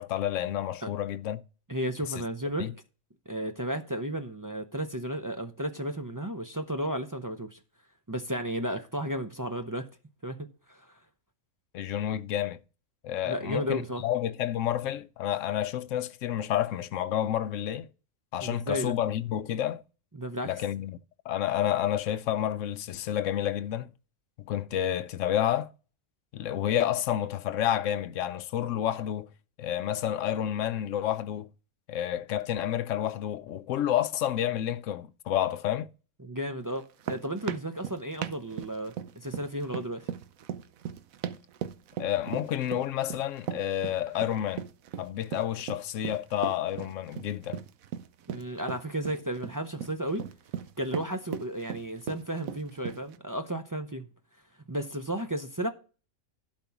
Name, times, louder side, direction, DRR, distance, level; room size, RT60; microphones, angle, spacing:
voice 1, 0.0-1.4 2.6-2.7 11.7-12.6 13.0-17.9 18.3-19.8 20.4-21.0 21.3-23.9 24.4-25.7 26.3-29.3 29.6-31.5 31.9-35.9 42.0-44.6 45.0-47.6, left 11 dB, 70° left, 0.9 m, -30 dB
voice 2, 1.7-2.7 3.3-7.6 8.1-9.9 10.2-10.9 13.2-14.0 18.4-19.0 20.2-20.5 36.2-40.1 48.3-50.3 50.8-54.1 54.7-55.7, right 1 dB, 25° right, 0.4 m, -33 dB
sound 1, 36.8-53.2, right 9 dB, 85° right, 1.1 m, -38 dB
12.0 x 4.4 x 5.9 m
omnidirectional pair, 1.4 m